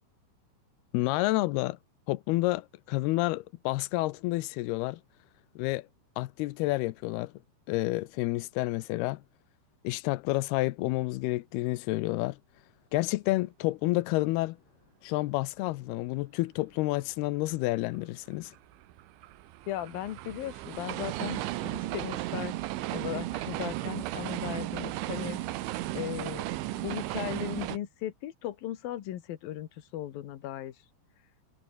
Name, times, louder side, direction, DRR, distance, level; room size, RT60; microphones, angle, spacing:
voice 1, 0.9-1.8 2.1-5.0 5.6-5.9 6.2-7.3 7.7-9.2 9.8-12.4 12.9-14.6 15.0-18.5, left 19 dB, 85° left, 2.3 m, -29 dB
sound 1, 18.4-27.8, right 16 dB, 85° right, 3.6 m, -35 dB
voice 2, 19.7-22.6 22.9-25.4 25.9-26.5 26.7-30.7, left 12 dB, 60° left, 2.9 m, -37 dB
omnidirectional pair, 5.4 m